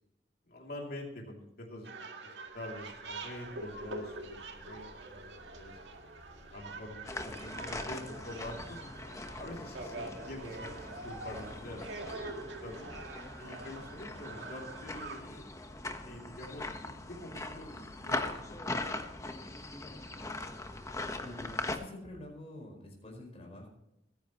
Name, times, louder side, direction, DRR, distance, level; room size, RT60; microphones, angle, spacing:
voice 1, 0.5-1.9 2.2-5.8 6.5-8.8 9.4-12.9 13.4-15.5 16.0-19.1 19.4-19.5 19.8-20.4, left 1 dB, 60° left, -1 dB, 2.9 m, -46 dB
sound 1, 1.8-15.2, right 3 dB, 85° right, 2.0 m, -45 dB
sound 2, 2.4-12.2, equal, 40° right, 5.5 m, -56 dB
sound 3, 7.0-21.8, left 2 dB, 20° left, 1.2 m, -41 dB
voice 2, 21.2-23.7, left 1 dB, 35° left, 1 dB, 4.9 m, -47 dB
22.0 x 10.5 x 3.1 m, 0.85 s
head